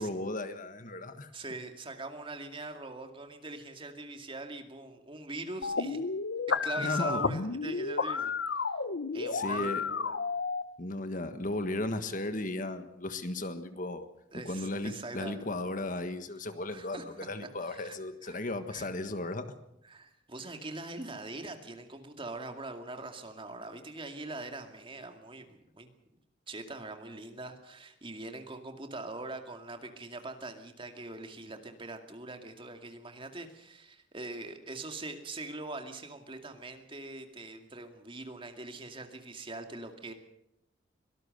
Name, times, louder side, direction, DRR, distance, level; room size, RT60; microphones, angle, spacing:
voice 1, 0.0-1.3 6.8-7.2 9.3-9.8 10.8-14.1 14.4-19.5, left 2 dB, 45° left, 10 dB, 1.5 m, -35 dB
voice 2, 1.3-6.0 6.5-8.7 9.1-10.1 14.3-15.5 16.7-17.0 17.6-18.0 18.2-18.4 18.7-18.9 19.8-25.9 26.5-40.1, right 2 dB, 25° right, 5 dB, 2.3 m, -42 dB
sound 1, 5.6-10.6, left 4 dB, 65° left, 0.9 m, -32 dB
24.0 x 18.5 x 6.7 m, 0.78 s
head